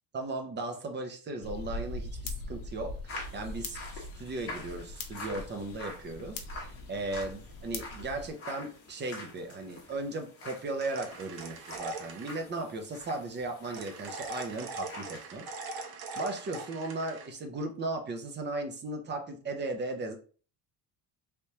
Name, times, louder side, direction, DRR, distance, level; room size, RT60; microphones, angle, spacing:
voice 1, 0.1-15.5 16.2-20.2, right 2 dB, 25° right, 5 dB, 0.6 m, -37 dB
sound 1, 1.4-8.3, left 3 dB, 55° left, 0.7 m, -41 dB
sound 2, 3.1-15.3 15.5-15.9, left 2 dB, 35° left, 1.2 m, -46 dB
sound 3, 10.8-12.4 13.7-17.3, right 3 dB, 60° right, 0.8 m, -41 dB
3.4 x 3.0 x 2.8 m, 0.40 s
cardioid pair, 160°, 42 cm